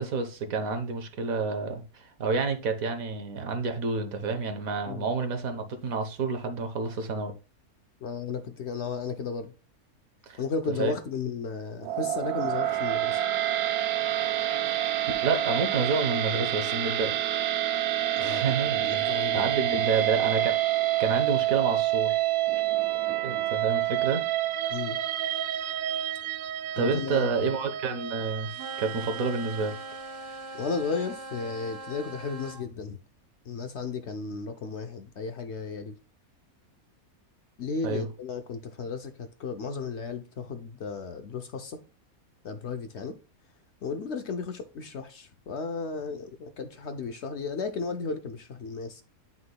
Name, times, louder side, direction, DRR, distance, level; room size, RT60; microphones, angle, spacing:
voice 1, 0.0-7.3 10.3-10.4 10.8-10.9 14.7-14.8 15.2-17.1 18.2-20.6 21.0-22.2 23.2-24.2 26.8-28.5 28.8-29.8 37.8-38.0, right 4 dB, 70° right, 1.5 m, -29 dB
voice 2, 8.0-9.5 10.4-13.2 18.1-18.5 18.8-19.5 24.7-25.0 26.8-27.5 30.5-33.0 33.4-35.9 37.6-41.8 42.4-43.2 43.8-49.0, left 5 dB, 60° left, 0.8 m, -34 dB
sound 1, 11.8-30.1, right 13 dB, 90° right, 1.1 m, -28 dB
sound 2, 28.5-32.6, right 3 dB, 50° right, 2.4 m, -41 dB
9.6 x 5.8 x 2.2 m
omnidirectional pair, 1.5 m